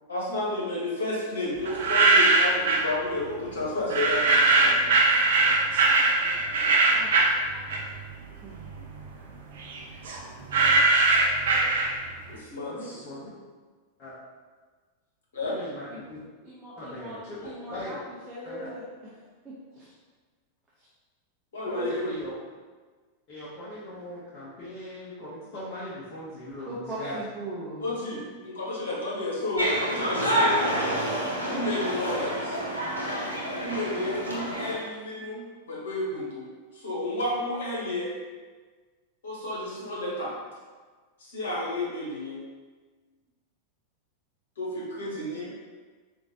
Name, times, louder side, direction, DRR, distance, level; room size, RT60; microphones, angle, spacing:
voice 1, 0.1-5.3 12.3-13.0 15.3-15.6 21.5-22.1 27.8-30.7 31.4-32.6 33.6-38.1 39.2-40.3 41.2-42.4 44.6-45.5, left 1 dB, 65° left, -4 dB, 1.1 m, -31 dB
sound 1, 1.7-2.9 3.9-8.1 8.5-12.2, right 3 dB, 60° right, 0.5 m, -21 dB
voice 2, 12.7-13.3 14.0-14.1 15.4-16.2 16.8-18.0 18.4-18.7 21.7-22.3 23.3-27.2, equal, 35° left, -8 dB, 0.9 m, -39 dB
voice 3, 16.4-18.8 19.2-19.9 26.6-27.8, right 1 dB, 15° right, -8 dB, 0.8 m, -40 dB
sound 2, 29.6-34.8, equal, 85° left, 0.7 m, -28 dB
4.8 x 2.6 x 2.7 m, 1.4 s
figure-of-eight pair, 90°, 0 cm